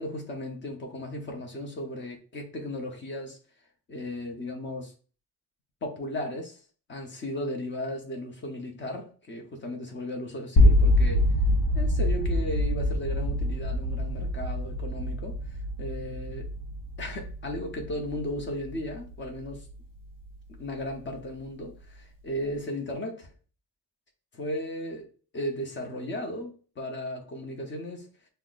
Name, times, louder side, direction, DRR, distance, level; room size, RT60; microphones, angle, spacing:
voice 1, 0.0-3.4 3.9-4.9 5.8-6.6 6.9-11.3 11.7-16.5 17.0-19.7 20.6-23.3 24.3-25.1 25.3-28.1, left 1 dB, 30° left, 2 dB, 0.8 m, -35 dB
sound 1, 10.6-20.5, left 1 dB, 60° left, 0.9 m, -26 dB
5.6 x 2.2 x 2.4 m, 0.39 s
cardioid pair, 135°, 38 cm